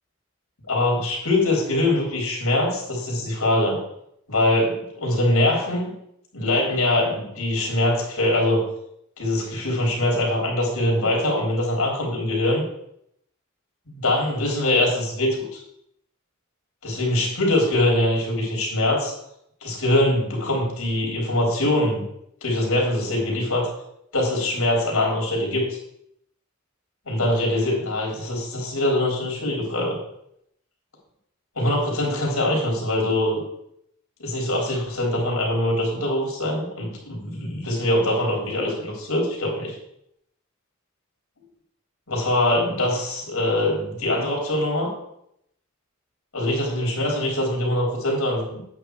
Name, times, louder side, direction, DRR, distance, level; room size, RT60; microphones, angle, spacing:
voice 1, 0.7-3.8 4.3-5.9 6.3-8.7 9.2-12.6 13.9-15.6 16.8-19.1 19.6-22.0 22.4-23.7 24.1-25.7 27.1-30.0 31.6-33.4 34.2-39.8 42.1-44.9 46.3-48.6, left 1 dB, 80° left, -1 dB, 3.4 m, -23 dB
9.3 x 8.1 x 4.7 m, 0.74 s
head